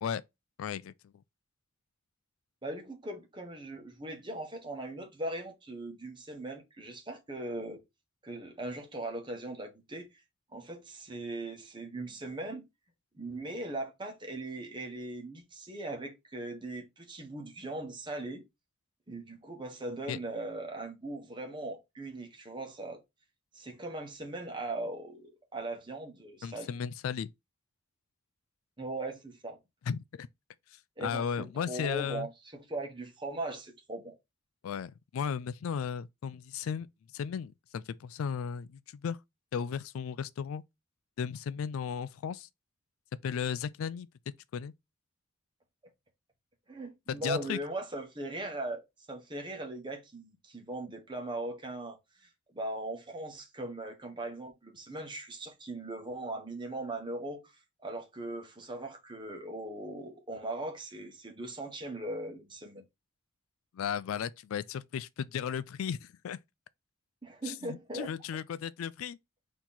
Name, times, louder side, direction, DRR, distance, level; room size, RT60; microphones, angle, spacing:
voice 1, 0.6-0.9 20.1-20.2 26.4-27.3 29.9-30.3 31.0-32.3 34.6-36.9 37.1-39.2 39.5-40.6 41.2-42.5 43.2-44.1 44.5-44.7 47.1-47.6 63.7-66.4 67.4-69.2, left 7 dB, 80° left, 0.3 m, -35 dB
voice 2, 2.6-7.8 8.2-10.1 10.5-12.7 13.2-18.4 19.1-23.0 23.5-26.8 28.8-29.6 31.0-34.1 46.7-48.8 49.1-57.5 57.8-62.8 67.2-68.1, right 2 dB, 20° right, 1.0 m, -39 dB
4.4 x 2.9 x 3.8 m
head